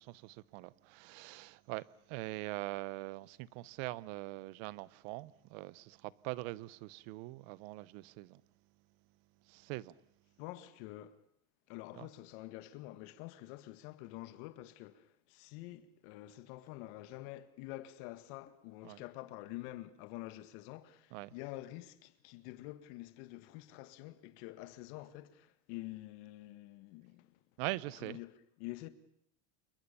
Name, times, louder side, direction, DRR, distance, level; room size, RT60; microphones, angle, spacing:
voice 1, 0.0-8.4 9.4-9.9 11.9-12.1 18.8-19.0 21.1-21.3 27.6-28.2, right 20 dB, 60° right, 1.0 m, -43 dB
voice 2, 10.4-11.2 11.7-27.4 28.0-28.9, left 16 dB, 60° left, 2.0 m, -48 dB
sound 1, 16.1-16.2 16.7-16.8 17.3-17.5 17.9-18.0 18.5-18.8 19.1-19.2 19.7-19.9 20.3-20.4, left 8 dB, 20° left, 1.4 m, -69 dB
28.0 x 22.5 x 7.0 m
cardioid pair, 170°, 44 cm